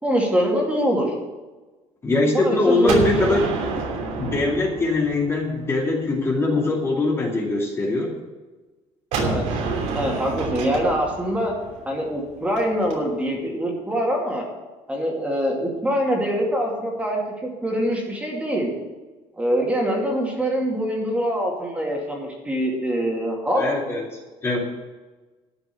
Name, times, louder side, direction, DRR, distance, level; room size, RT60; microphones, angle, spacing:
voice 1, 0.0-1.1 2.3-3.4 9.2-9.4 9.9-11.5 11.9-14.4 14.9-18.7 19.4-23.6, equal, 10° right, -1 dB, 2.5 m, -24 dB
voice 2, 2.0-3.8 4.2-8.1 23.6-24.0 24.4-24.6, left 2 dB, 20° left, -1 dB, 2.3 m, -22 dB
Gunshot gunfire, 2.9-5.7 9.1-12.9, right 3 dB, 80° right, 3.0 m, -28 dB
12.0 x 6.0 x 9.1 m, 1.2 s
cardioid pair, 155°, 12 cm